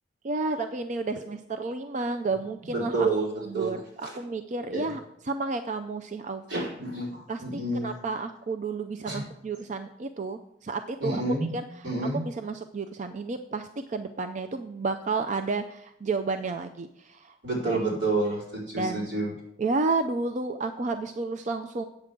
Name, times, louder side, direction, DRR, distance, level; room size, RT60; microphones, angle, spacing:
voice 1, 0.2-3.1 3.5-5.0 5.3-6.6 7.3-11.2 11.5-17.3 17.6-17.8 18.8-19.2 19.6-21.8, right 3 dB, 45° right, 8 dB, 0.5 m, -31 dB
voice 2, 2.7-3.3 3.5-3.8 4.0-4.1 4.7-4.9 6.5-7.9 9.0-9.2 11.0-11.5 11.8-12.2 17.4-19.3, right 2 dB, 80° right, -4 dB, 4.5 m, -29 dB
8.5 x 7.5 x 5.1 m, 0.75 s
head